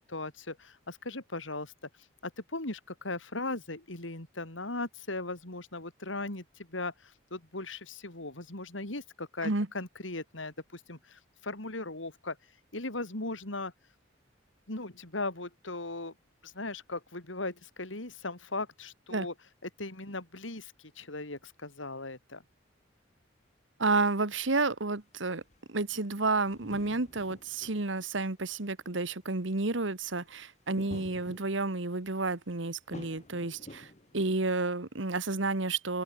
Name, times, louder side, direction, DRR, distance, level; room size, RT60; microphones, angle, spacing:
voice 1, 0.0-1.7 2.2-12.4 12.7-13.7 14.7-16.1 16.4-19.3 19.6-22.4, left 2 dB, 80° left, 4.0 m, -38 dB
voice 2, 23.8-25.4 25.7-36.0, right 3 dB, 75° right, 1.7 m, -31 dB
sound 1, 25.1-25.2 25.4-28.5 29.0-29.1 29.4-29.6 30.8-32.0 32.9-34.2, left 1 dB, 35° left, 2.3 m, -49 dB
open air
head